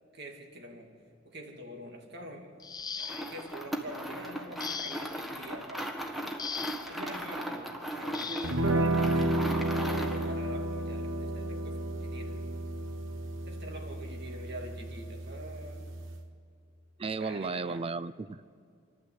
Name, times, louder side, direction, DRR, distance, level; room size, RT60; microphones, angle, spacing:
voice 1, 0.1-0.9 1.2-2.5 3.0-6.0 6.3-6.5 6.7-12.4 13.5-15.9 17.1-17.9, right 1 dB, 60° right, 2 dB, 2.4 m, -45 dB
sound 1, 2.6-3.5 4.6-5.3 6.4-7.0 8.1-8.6 9.8-10.0 10.5-10.7, left 6 dB, 20° left, 0.5 m, -39 dB
sound 2, 3.0-10.3, equal, ahead, 1.6 m, -38 dB
sound 3, 8.4-16.2, right 1 dB, 90° right, 1.3 m, -32 dB
voice 2, 17.0-18.4, right 4 dB, 30° right, 16 dB, 0.4 m, -34 dB
27.0 x 12.0 x 8.4 m, 2.3 s
head